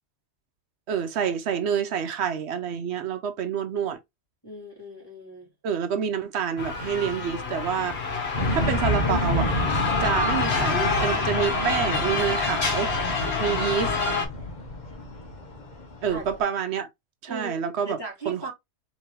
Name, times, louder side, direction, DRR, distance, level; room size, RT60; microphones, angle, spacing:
voice 1, 0.9-4.0 5.6-9.5 10.0-12.9 13.4-13.9 16.0-16.9 17.2-18.0 18.3-18.5, right 7 dB, 80° right, 0.9 m, -28 dB
voice 2, 4.4-5.5 16.1-16.3 17.3-17.5 17.8-18.5, right 3 dB, 20° left, 2.3 m, -37 dB
sound 1, 6.6-14.3, left 4 dB, 70° left, 1.3 m, -27 dB
sound 2, 8.3-16.4, left 1 dB, 45° left, 1.2 m, -30 dB
4.4 x 3.1 x 3.3 m
omnidirectional pair, 1.1 m